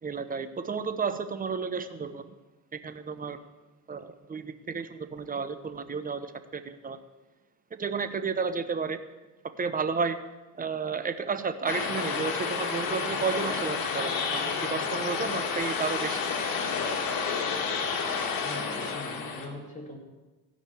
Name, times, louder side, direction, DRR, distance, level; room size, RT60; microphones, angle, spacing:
voice 1, 0.0-2.3 2.7-3.4 3.9-7.0 7.7-9.0 9.6-10.2 10.6-16.2, right 5 dB, 25° right, 10 dB, 0.8 m, -32 dB
sound 1, 11.7-19.5, left 5 dB, 75° left, 1.9 m, -30 dB
voice 2, 18.4-20.0, left 1 dB, 20° left, 0 dB, 2.7 m, -41 dB
15.5 x 5.3 x 8.4 m, 1.2 s
cardioid pair, 110°, 35 cm